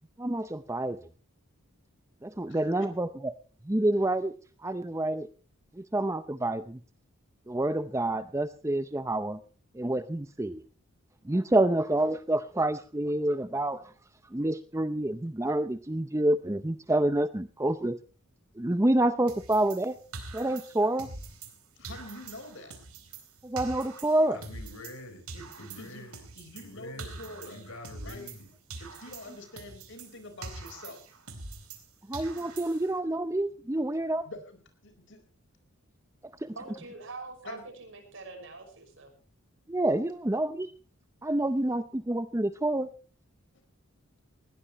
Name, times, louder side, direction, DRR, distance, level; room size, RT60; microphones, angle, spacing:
voice 1, 0.2-1.0 2.2-3.3 3.7-4.3 4.6-5.3 5.8-6.8 7.5-9.4 9.7-10.6 11.3-13.8 14.3-18.0 18.6-20.0 20.3-21.1 23.4-24.4 32.1-34.3 36.4-36.5 39.7-40.7 41.2-42.9, right 1 dB, 15° right, 12 dB, 0.6 m, -28 dB
sound 1, 19.3-21.6 21.8-25.0 25.3-28.4 28.7-31.9 32.1-33.0, right 3 dB, 90° right, 3.9 m, -44 dB
voice 2, 21.8-22.8 25.3-27.7 28.0-28.3 28.8-31.2 34.2-35.2 37.4-37.6, left 2 dB, 55° left, 8 dB, 4.5 m, -46 dB
voice 3, 24.3-25.3 25.6-28.5, left 1 dB, 80° left, 7 dB, 5.1 m, -46 dB
voice 4, 36.5-39.1, right 3 dB, 60° right, 5 dB, 5.8 m, -44 dB
20.0 x 17.0 x 3.1 m, 0.35 s
head